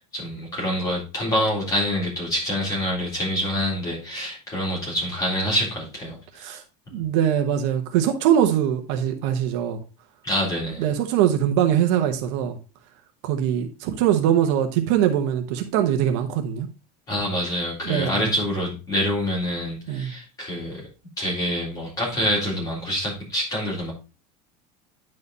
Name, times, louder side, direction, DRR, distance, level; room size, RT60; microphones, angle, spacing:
voice 1, 0.1-6.6 6.9-7.0 10.2-10.8 17.1-20.9 21.2-23.9, equal, 20° left, -4 dB, 3.7 m, -26 dB
voice 2, 6.9-9.8 10.8-12.6 13.2-16.7 17.8-18.1 19.9-20.1, right 10 dB, 50° right, 5 dB, 1.0 m, -22 dB
9.7 x 4.9 x 4.0 m, 0.30 s
supercardioid pair, 180°, 19 cm